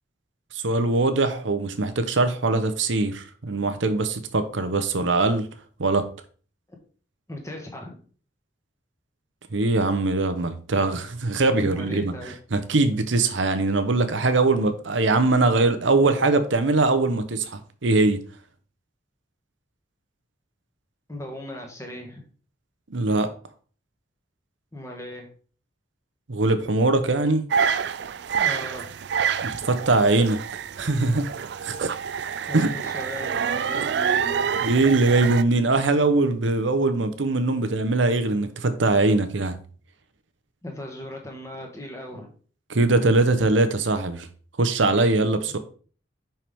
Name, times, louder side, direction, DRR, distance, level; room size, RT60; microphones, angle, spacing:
voice 1, 0.6-5.5 5.8-6.1 9.5-12.1 12.5-18.2 22.9-23.3 26.3-27.4 29.4-30.4 30.8-31.3 31.6-31.9 32.5-32.7 34.6-39.6 42.7-44.3 44.6-45.6, right 3 dB, 85° right, 0.8 m, -22 dB
voice 2, 7.3-7.9 11.6-12.3 21.1-22.2 24.7-25.3 28.3-28.9 32.5-34.5 40.6-42.3, left 1 dB, 15° left, 1.3 m, -37 dB
sound 1, 27.5-35.4, right 7 dB, 65° right, 0.4 m, -27 dB
5.7 x 5.7 x 3.5 m
head